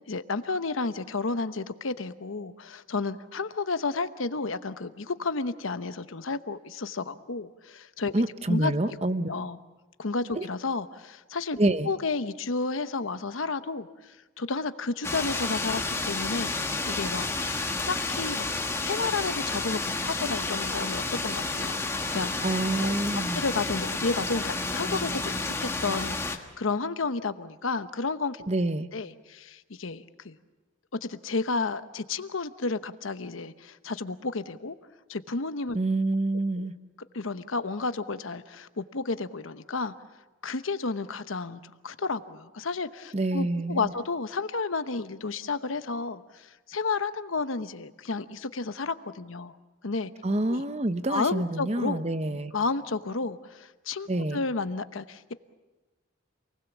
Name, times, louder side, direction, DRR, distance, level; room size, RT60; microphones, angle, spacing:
voice 1, 0.1-8.1 8.5-8.7 9.3-9.6 10.0-11.6 11.9-16.5 16.9-17.3 17.9-18.5 18.8-21.8 22.1-22.3 22.8-23.0 23.3-28.5 28.9-30.4 31.0-34.8 35.1-35.8 36.6-36.7 37.1-39.9 40.4-49.6 49.8-50.1 50.5-50.6 51.1-52.0 52.3-55.3, left 3 dB, 90° left, 11 dB, 1.0 m, -32 dB
voice 2, 8.1-9.3 10.3-10.4 11.6-11.9 22.4-23.4 28.5-28.9 35.7-36.7 43.1-43.9 50.2-52.5 54.1-54.4, right 2 dB, 35° right, 11 dB, 0.9 m, -27 dB
sound 1, 15.0-26.4, left 3 dB, 15° left, 1.4 m, -30 dB
28.0 x 19.5 x 7.2 m, 1.2 s
head